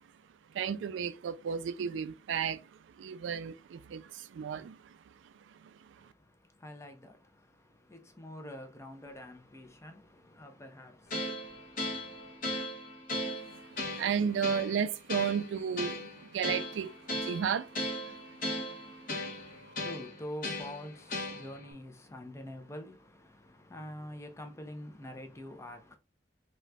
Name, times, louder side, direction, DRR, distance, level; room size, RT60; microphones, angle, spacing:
voice 1, 0.5-2.6 3.0-5.0 13.5-17.7 18.1-18.2, right 7 dB, 80° right, 0.3 m, -33 dB
voice 2, 6.0-12.5 19.1-26.0, left 1 dB, 15° left, 0.5 m, -47 dB
sound 1, 11.1-21.7, left 1 dB, 50° left, 0.8 m, -38 dB
3.9 x 2.2 x 2.2 m
head